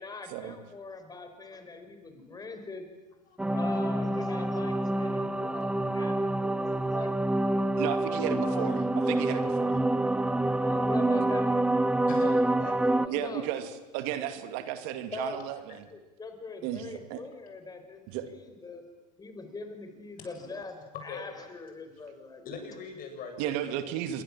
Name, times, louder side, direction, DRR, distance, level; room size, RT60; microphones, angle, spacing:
voice 1, 0.0-2.9 3.5-7.4 8.4-8.7 10.6-11.7 12.8-13.4 15.1-15.4 15.9-18.8 19.2-22.4, left 3 dB, 20° left, 7 dB, 5.0 m, -42 dB
sound 1, 3.4-13.1, right 1 dB, 5° right, 0.9 m, -27 dB
voice 2, 7.8-9.8 13.1-15.9 16.6-17.2 18.1-18.3 23.4-24.2, right 11 dB, 60° right, 9 dB, 2.5 m, -34 dB
voice 3, 12.1-13.2 21.1-21.2 22.4-23.8, left 5 dB, 45° left, 4 dB, 7.8 m, -42 dB
27.0 x 23.5 x 7.5 m, 1.1 s
hypercardioid pair, 105°, 21 cm